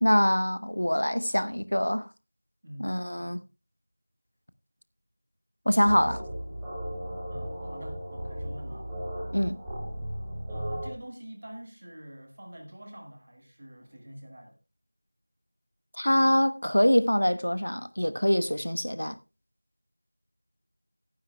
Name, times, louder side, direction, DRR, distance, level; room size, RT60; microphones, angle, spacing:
voice 1, 0.0-2.1 2.8-3.4 5.7-6.2 9.3-9.6 16.0-19.2, equal, 60° left, 1.0 m, -24 dB
sound 1, 5.8-10.9, equal, 5° right, 1.1 m, -36 dB
voice 2, 7.3-8.9 10.5-14.6, right 1 dB, 25° right, 1.6 m, -46 dB
18.0 x 9.9 x 2.2 m
figure-of-eight pair, 175°, 0 cm